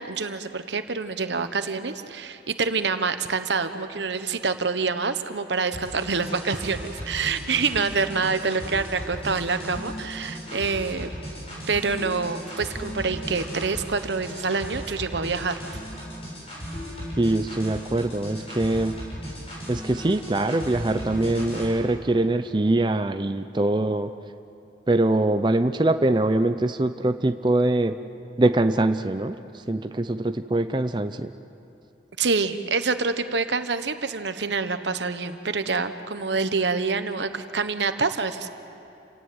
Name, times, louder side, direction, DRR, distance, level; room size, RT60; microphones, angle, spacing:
voice 1, 0.0-11.1 11.7-15.8 32.2-38.5, right 4 dB, 85° right, 10 dB, 1.1 m, -26 dB
sound 1, 5.7-21.7, equal, 35° left, 7.7 m, -36 dB
voice 2, 17.2-19.0 19.7-24.1 24.9-28.0 28.4-29.4 29.7-31.3, right 2 dB, 25° right, 9 dB, 0.5 m, -23 dB
29.5 x 18.0 x 7.9 m, 2.7 s
head